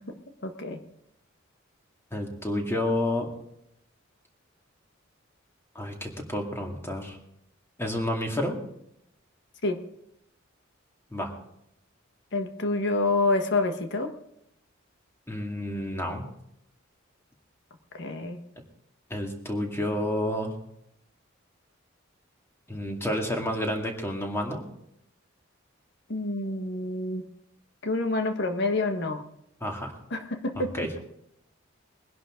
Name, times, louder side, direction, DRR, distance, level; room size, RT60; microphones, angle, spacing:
voice 1, 0.4-0.8 9.6-9.8 12.3-14.1 17.9-18.4 26.1-27.2 27.8-29.2 30.1-30.9, left 2 dB, 60° left, 6 dB, 1.5 m, -27 dB
voice 2, 2.1-3.3 5.7-7.2 7.8-8.6 11.1-11.3 15.3-16.2 19.1-20.5 22.7-24.6 29.6-29.9 30.6-30.9, left 1 dB, 15° left, 1 dB, 2.4 m, -30 dB
21.5 x 11.0 x 3.8 m, 0.76 s
head